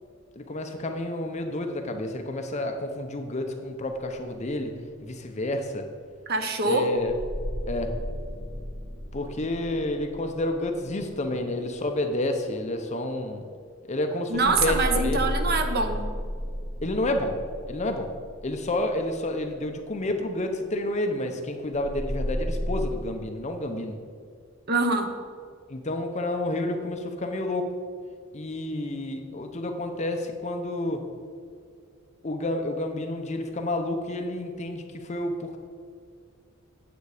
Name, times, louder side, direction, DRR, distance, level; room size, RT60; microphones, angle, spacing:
voice 1, 0.4-5.9 6.6-7.1 7.7-7.9 9.1-13.5 13.9-15.3 16.8-17.4 17.7-18.1 18.4-24.0 25.7-27.7 28.3-31.0 32.2-35.6, left 1 dB, 35° left, 5 dB, 0.8 m, -30 dB
voice 2, 6.3-6.9 14.3-16.0 24.7-25.1, right 3 dB, 50° right, 6 dB, 1.0 m, -24 dB
sound 1, 7.0-11.7 14.3-19.4 21.7-22.9, equal, 5° right, 2.1 m, -33 dB
9.3 x 8.1 x 4.9 m, 2.1 s
head